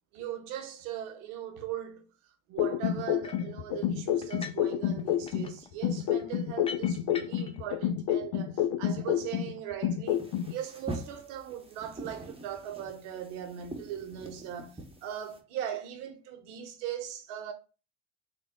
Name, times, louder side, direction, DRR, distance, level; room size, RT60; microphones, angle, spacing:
voice 1, 0.1-2.1 2.5-10.2 10.5-17.5, right 10 dB, 80° right, 0.8 m, -39 dB
sound 1, 2.6-5.5 5.8-9.5 9.8-10.5, left 10 dB, 60° left, 0.6 m, -29 dB
sound 2, 3.2-3.5 4.2-4.7 5.0-7.6, left 5 dB, 15° left, 0.3 m, -45 dB
sound 3, 10.1-15.4, right 2 dB, 15° right, 0.8 m, -44 dB
3.5 x 2.2 x 3.5 m
hypercardioid pair, 75°, 44 cm